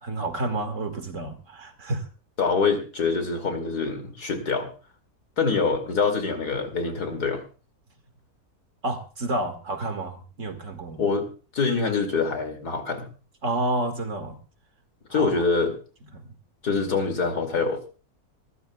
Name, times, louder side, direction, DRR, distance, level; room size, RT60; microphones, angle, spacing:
voice 1, 0.0-2.1 8.8-11.0 13.4-14.4 15.1-15.3 16.1-16.3, right 2 dB, 50° right, 7 dB, 2.3 m, -30 dB
voice 2, 2.4-4.7 5.4-7.4 11.0-11.3 11.5-13.1 15.1-15.7 16.6-17.9, left 4 dB, 80° left, 6 dB, 3.2 m, -25 dB
25.0 x 14.0 x 2.4 m, 0.36 s
omnidirectional pair, 1.7 m